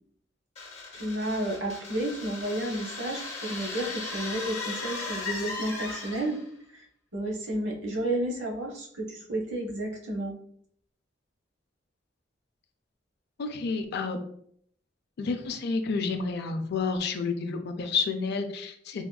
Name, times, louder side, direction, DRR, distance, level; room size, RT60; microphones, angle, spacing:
sound 1, 0.6-6.5, left 3 dB, 35° left, 0.8 m, -37 dB
voice 1, 0.9-6.4 6.7-6.8 7.1-10.3, right 1 dB, 80° right, 0 dB, 0.8 m, -31 dB
voice 2, 13.4-14.2 15.2-19.0, left 4 dB, 60° left, 6 dB, 0.4 m, -30 dB
3.5 x 2.3 x 2.2 m, 0.65 s
head